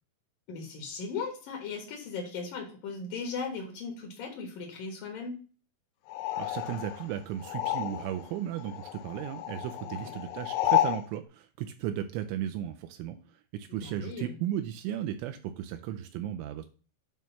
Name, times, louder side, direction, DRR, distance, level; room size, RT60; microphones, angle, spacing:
voice 1, 0.5-5.4 9.8-10.1 13.7-14.3, left 4 dB, 65° left, 1 dB, 2.2 m, -38 dB
sound 1, 6.1-8.3 8.6-11.1, left 13 dB, 85° left, 2.9 m, -31 dB
voice 2, 6.4-16.7, right 11 dB, 85° right, 7 dB, 3.0 m, -35 dB
9.1 x 3.1 x 5.5 m, 0.37 s
omnidirectional pair, 5.7 m